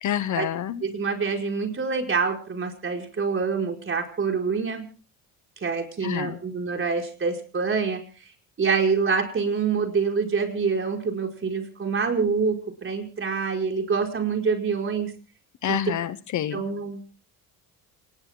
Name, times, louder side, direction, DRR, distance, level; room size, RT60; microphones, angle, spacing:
voice 1, 0.0-0.8 6.0-6.4 15.6-16.6, left 10 dB, 50° left, 15 dB, 1.0 m, -28 dB
voice 2, 0.8-4.8 5.6-8.0 8.6-15.1 15.7-15.8 16.5-17.0, right 5 dB, 35° right, 2 dB, 5.1 m, -26 dB
28.0 x 20.5 x 2.2 m, 0.38 s
cardioid pair, 100°, 37 cm